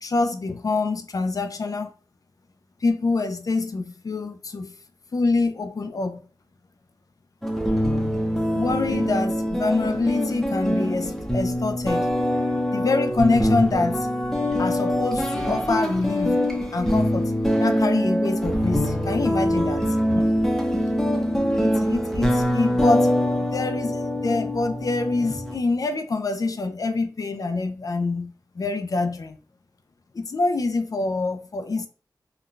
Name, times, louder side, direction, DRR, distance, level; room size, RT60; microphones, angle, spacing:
voice 1, 0.0-1.9 2.8-4.7 5.1-6.2 8.5-12.1 12.7-14.1 14.6-16.4 16.7-17.3 17.6-19.8 20.1-20.3 21.6-29.4 30.1-31.9, left 3 dB, 55° left, 0.4 m, -26 dB
sound 1, 7.4-25.6, equal, 5° left, 0.6 m, -24 dB
3.8 x 2.2 x 2.4 m
wide cardioid pair, 90°, 7 cm